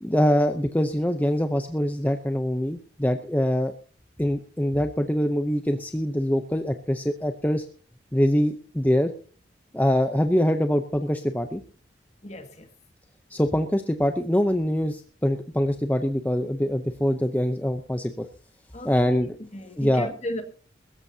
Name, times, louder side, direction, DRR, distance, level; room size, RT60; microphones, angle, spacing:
voice 1, 0.0-3.7 4.2-7.6 8.1-9.1 9.7-11.6 13.3-18.3 18.8-19.4 19.8-20.1, equal, 10° left, 0.7 m, -24 dB
voice 2, 12.2-12.7 18.7-19.2 19.5-20.4, left 1 dB, 35° left, 1.9 m, -35 dB
21.5 x 13.5 x 2.8 m
head